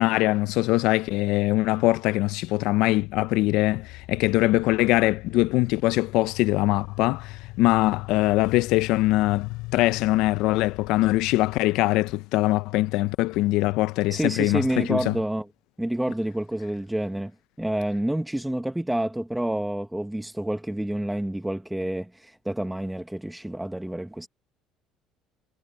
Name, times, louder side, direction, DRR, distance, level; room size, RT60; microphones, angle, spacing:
voice 1, 0.0-15.2, left 18 dB, 65° left, 0.4 m, -22 dB
sound 1, 3.0-11.6, left 23 dB, 85° left, 4.9 m, -40 dB
voice 2, 14.1-15.5 15.8-17.3 17.6-24.3, right 1 dB, 5° right, 0.7 m, -28 dB
cardioid pair, 175°, 0 cm